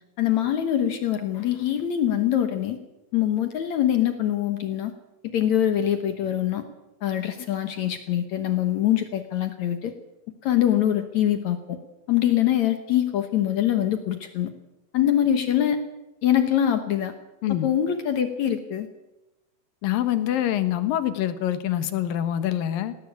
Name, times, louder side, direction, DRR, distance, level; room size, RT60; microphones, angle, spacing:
voice 1, 0.2-2.8 3.1-4.9 5.2-6.6 7.0-9.9 10.4-11.8 12.1-14.5 14.9-15.8 16.2-17.1 17.6-18.9, left 11 dB, 65° left, 8 dB, 2.2 m, -23 dB
voice 2, 19.8-23.0, left 11 dB, 80° left, 12 dB, 2.9 m, -25 dB
19.0 x 16.5 x 8.4 m, 0.98 s
omnidirectional pair, 4.0 m